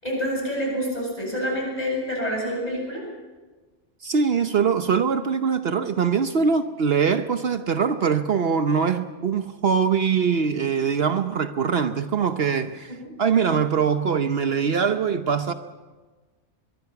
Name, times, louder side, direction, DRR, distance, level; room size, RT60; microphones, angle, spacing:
voice 1, 0.0-3.0 13.0-13.1, equal, 35° left, -1 dB, 8.0 m, -27 dB
voice 2, 4.0-15.5, right 6 dB, 60° right, 9 dB, 1.0 m, -22 dB
23.0 x 22.5 x 5.9 m, 1.3 s
omnidirectional pair, 1.2 m